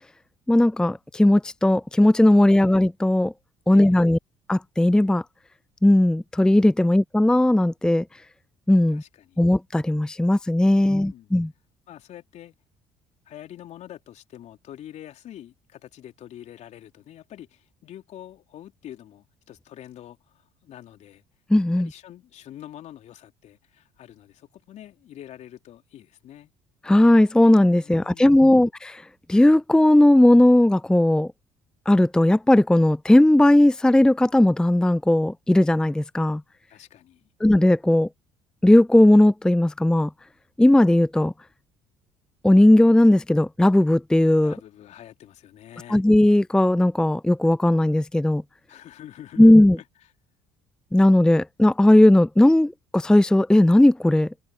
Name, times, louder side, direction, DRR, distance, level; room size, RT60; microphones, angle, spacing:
voice 1, 0.5-3.3 3.7-4.2 4.5-5.2 5.8-8.0 8.7-9.0 9.4-11.5 21.5-21.9 26.8-29.0 29.3-31.3 31.9-36.4 37.4-38.1 38.6-40.1 40.6-41.3 42.4-44.5 45.9-48.4 49.4-49.8 50.9-54.3, left 1 dB, 5° left, 0.5 m, -17 dB
voice 2, 2.4-2.8 3.7-4.1 8.9-9.5 10.7-11.3 11.9-12.6 13.3-21.2 21.8-26.5 27.8-28.6 36.7-37.3 44.4-46.0 48.7-49.8, left 11 dB, 55° left, 3.4 m, -45 dB
hypercardioid pair, 55°, 14 cm